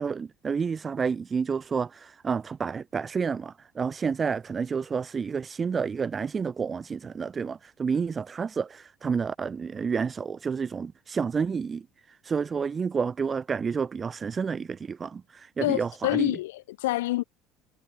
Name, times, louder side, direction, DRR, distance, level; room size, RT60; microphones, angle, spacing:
voice 1, 0.0-16.4, right 5 dB, 30° right, 3.6 m, -30 dB
voice 2, 15.6-17.2, left 18 dB, 85° left, 2.5 m, -27 dB
hypercardioid pair, 75°, 0 cm